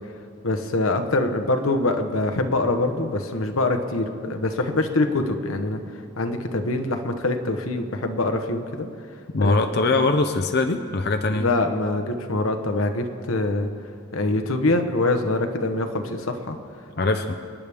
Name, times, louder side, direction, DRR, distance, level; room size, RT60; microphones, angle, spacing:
voice 1, 0.4-5.8 6.2-8.9 9.4-9.7 11.3-13.7 14.1-16.6, left 2 dB, 90° left, 6 dB, 1.1 m, -24 dB
voice 2, 9.3-11.5 17.0-17.4, left 3 dB, 50° left, 7 dB, 0.6 m, -22 dB
29.0 x 9.9 x 3.5 m, 2.4 s
head